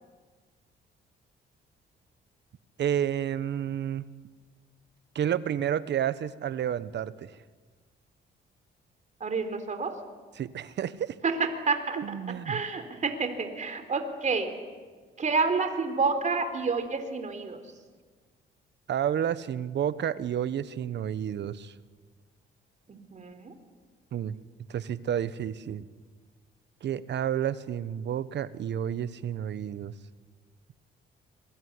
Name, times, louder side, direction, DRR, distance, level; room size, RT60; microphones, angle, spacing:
voice 1, 2.8-4.0 5.1-7.3 10.4-11.2 12.0-12.6 18.9-21.7 24.1-24.3 24.7-25.8 26.8-29.9, right 9 dB, 65° right, 15 dB, 1.2 m, -30 dB
voice 2, 9.2-9.9 11.2-12.0 12.5-14.5 15.2-17.6 22.9-23.5, right 4 dB, 40° right, 7 dB, 3.8 m, -29 dB
26.0 x 22.5 x 9.7 m, 1.4 s
cardioid pair, 90°, 20 cm